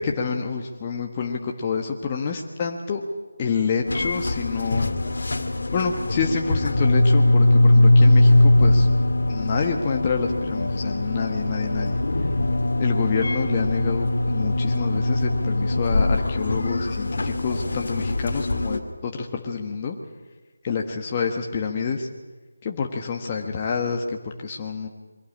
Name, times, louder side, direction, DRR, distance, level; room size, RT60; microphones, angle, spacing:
voice 1, 0.0-3.0 3.4-4.9 5.7-8.9 9.3-12.3 12.8-20.0 20.6-22.1 22.6-24.9, left 5 dB, 25° left, 1 dB, 1.4 m, -28 dB
sound 1, 3.9-18.8, left 1 dB, 65° left, 2.3 m, -21 dB
23.0 x 17.0 x 8.7 m, 1.3 s
figure-of-eight pair, 160°, 0 cm